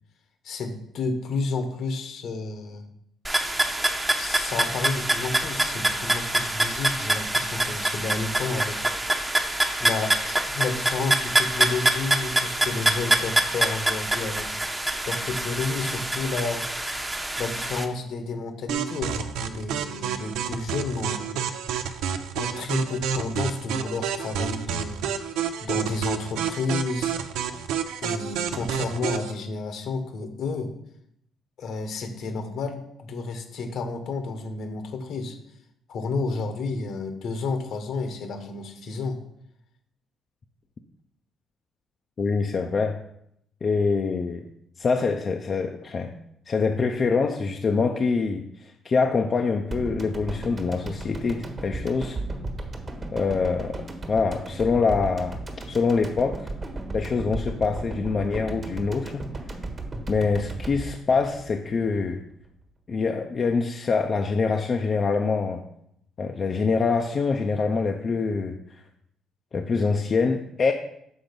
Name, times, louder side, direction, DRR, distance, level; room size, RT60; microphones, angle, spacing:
voice 1, 0.4-2.8 4.2-8.8 9.8-10.1 10.5-14.5 15.0-16.6 17.4-21.4 22.3-25.1 25.6-27.1 28.0-30.7 31.6-35.4 35.9-39.2, left 3 dB, 70° left, 6 dB, 1.1 m, -31 dB
sound 1, 3.2-17.8, right 1 dB, 15° right, 0.8 m, -25 dB
sound 2, 18.7-29.3, right 8 dB, 85° right, 0.5 m, -29 dB
voice 2, 42.2-43.0 43.6-44.5 44.8-46.1 46.5-52.2 53.1-53.8 54.1-55.4 55.7-56.5 56.9-59.3 60.1-62.2 62.9-65.6 66.2-68.6 69.5-70.7, left 4 dB, 45° left, 3 dB, 0.5 m, -25 dB
sound 3, 49.7-62.0 62.3-62.4, right 2 dB, 35° right, 1.3 m, -35 dB
6.2 x 3.8 x 5.2 m, 0.75 s
cardioid pair, 80°, 0 cm